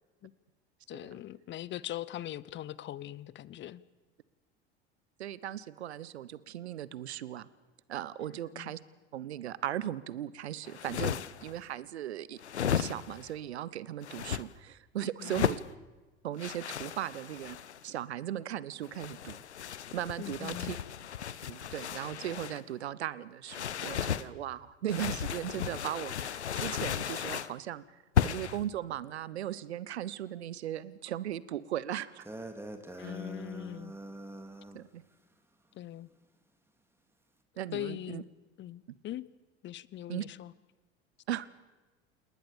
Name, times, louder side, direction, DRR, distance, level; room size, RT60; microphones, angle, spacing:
voice 1, 0.9-3.8 8.5-8.7 15.2-15.4 20.2-20.8 33.0-33.9 35.7-36.1 37.7-38.3 38.6-39.3 39.6-40.5, left 13 dB, 35° left, 21 dB, 0.8 m, -41 dB
voice 2, 5.2-7.5 7.9-8.8 9.1-12.4 12.7-15.6 16.2-17.6 17.8-19.4 19.9-20.8 21.5-27.8 28.2-32.3 33.0-33.1 34.7-35.0 37.6-38.2 40.1-40.2 41.3-41.5, right 11 dB, 75° right, 19 dB, 1.0 m, -37 dB
sound 1, 10.6-11.5 12.4-13.3 14.0-14.4 15.2-15.7 16.4-17.8 18.8-22.6 23.5-24.3 24.9-27.5 28.2-28.6, left 9 dB, 80° left, 0.8 m, -34 dB
sound 2, 32.2-34.8, right 1 dB, 5° right, 2.5 m, -44 dB
29.0 x 19.5 x 7.1 m, 1.2 s
figure-of-eight pair, 70°, 33 cm